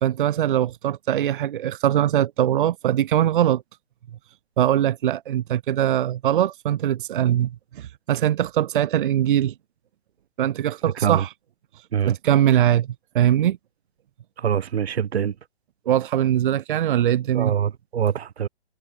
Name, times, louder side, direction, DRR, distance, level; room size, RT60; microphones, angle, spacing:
voice 1, 0.0-3.6 4.6-9.5 10.4-11.3 12.0-13.6 15.9-17.5, right 11 dB, 50° right, 0.7 m, -21 dB
voice 2, 14.4-15.3 17.3-18.5, right 8 dB, 70° right, 1.5 m, -24 dB
hypercardioid pair, 150°, 33 cm